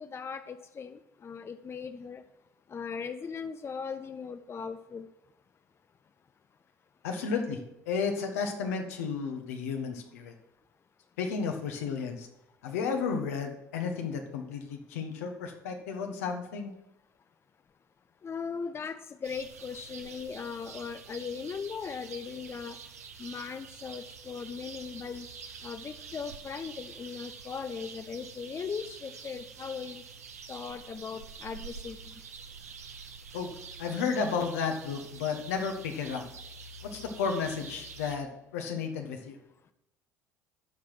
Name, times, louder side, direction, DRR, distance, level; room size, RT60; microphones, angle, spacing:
voice 1, 0.0-2.2 2.7-5.1 18.2-22.8 23.2-25.3 25.6-30.0 30.5-32.1, left 6 dB, 30° left, 10 dB, 0.7 m, -38 dB
voice 2, 7.0-7.6 7.8-10.3 11.2-12.3 12.6-16.7 33.3-33.5 33.8-36.2 36.8-39.4, left 5 dB, 80° left, 4 dB, 1.5 m, -33 dB
sound 1, 19.2-38.2, right 5 dB, 90° right, 0.8 m, -47 dB
12.5 x 5.0 x 5.9 m, 0.88 s
hypercardioid pair, 65°, 8 cm